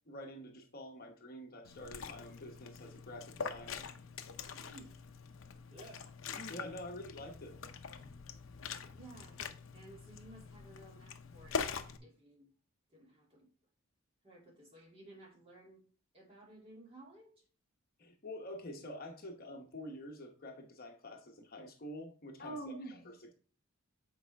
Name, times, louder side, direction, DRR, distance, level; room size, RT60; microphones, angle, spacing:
voice 1, 0.1-3.9 6.3-7.6 18.0-23.3, equal, 45° left, 1.0 m, -47 dB
Liquid, 1.6-12.0, left 6 dB, 65° left, 0.7 m, -44 dB
voice 2, 4.5-5.2 5.7-6.1 8.9-9.4 9.7-12.5 12.9-13.5 14.2-15.8 16.1-17.4, right 2 dB, 25° right, 2.7 m, -56 dB
8.6 x 4.9 x 3.5 m
head